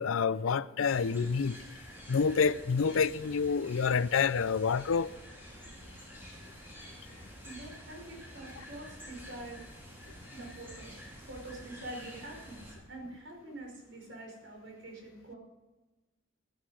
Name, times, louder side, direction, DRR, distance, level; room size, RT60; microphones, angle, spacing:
voice 1, 0.0-1.6 2.1-5.1, left 5 dB, 90° left, 0.5 m, -28 dB
sound 1, 0.8-12.7, equal, 10° right, 4.4 m, -49 dB
voice 2, 7.4-9.6 10.3-11.0 11.3-15.4, right 1 dB, 65° right, 5.1 m, -46 dB
16.5 x 12.0 x 4.9 m
head